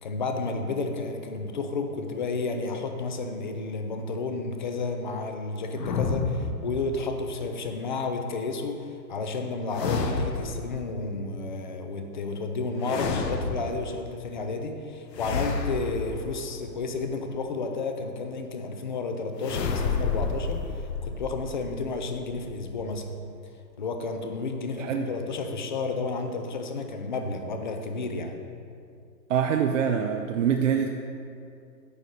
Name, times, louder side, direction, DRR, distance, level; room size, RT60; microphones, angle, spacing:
voice 1, 0.0-23.2 23.8-28.4, left 3 dB, 30° left, 5 dB, 0.4 m, -31 dB
sound 1, 5.8-7.3 9.7-10.8 12.8-14.0 15.1-16.9 19.4-23.0, left 4 dB, 75° left, 1.1 m, -30 dB
voice 2, 29.3-30.9, right 8 dB, 50° right, 4 dB, 0.5 m, -24 dB
9.4 x 4.1 x 6.3 m, 2.4 s
hypercardioid pair, 145°, 50 cm